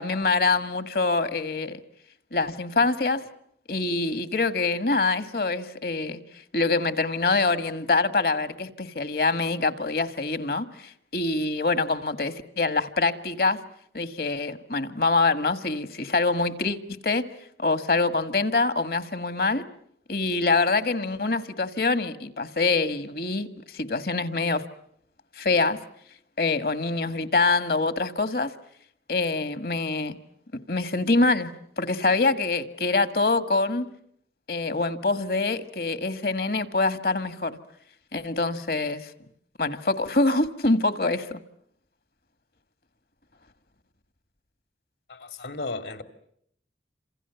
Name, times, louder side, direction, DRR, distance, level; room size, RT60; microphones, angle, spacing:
voice 1, 0.0-1.8 2.3-3.2 3.7-6.2 6.5-13.6 13.9-16.8 17.0-17.3 17.6-19.6 20.1-24.6 25.3-25.8 26.4-28.5 29.1-30.2 30.7-33.9 34.5-37.6 38.1-39.1 39.6-41.4, left 3 dB, 55° left, 1.6 m, -25 dB
voice 2, 45.1-46.0, left 3 dB, 70° left, 2.6 m, -34 dB
29.0 x 27.0 x 7.0 m
head